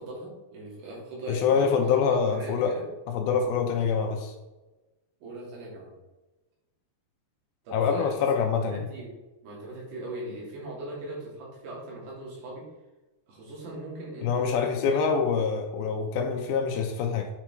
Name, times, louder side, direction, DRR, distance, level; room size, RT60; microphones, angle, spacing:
voice 1, 0.0-2.8 5.2-5.9 7.6-8.3 8.7-9.2 9.4-12.7 13.3-15.3, right 1 dB, 75° right, -4 dB, 4.7 m, -40 dB
voice 2, 1.3-2.8 3.1-4.3 7.7-8.9 14.2-17.3, left 6 dB, 80° left, 4 dB, 2.4 m, -25 dB
9.0 x 4.9 x 4.5 m, 1.1 s
omnidirectional pair, 4.8 m